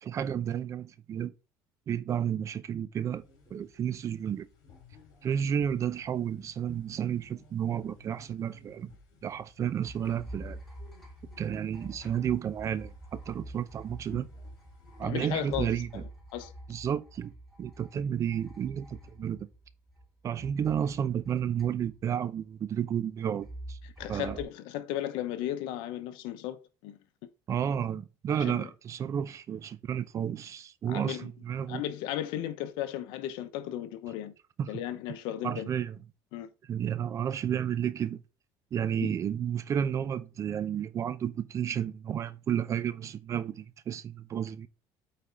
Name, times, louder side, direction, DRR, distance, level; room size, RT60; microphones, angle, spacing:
voice 1, 0.0-1.3 1.9-3.2 3.5-4.5 5.2-8.9 9.2-10.6 11.4-14.3 15.0-16.0 16.7-17.3 17.6-19.5 20.2-23.8 24.1-24.4 27.5-31.8 34.6-34.7 35.4-36.0 36.7-38.2 38.7-44.7, right 9 dB, 40° right, 0.6 m, -32 dB
sound 1, 3.1-15.0, left 6 dB, 60° left, 3.4 m, -58 dB
sound 2, 9.8-20.0 20.4-22.2 23.4-24.4, right 1 dB, 5° left, 3.2 m, -46 dB
voice 2, 15.0-16.0 16.3-16.5 23.8-27.0 28.4-28.7 30.9-31.3 31.7-34.3 34.7-35.7 36.3-36.5 39.0-39.1, left 12 dB, 75° left, 0.9 m, -35 dB
8.5 x 4.2 x 3.5 m
cardioid pair, 120°, 8 cm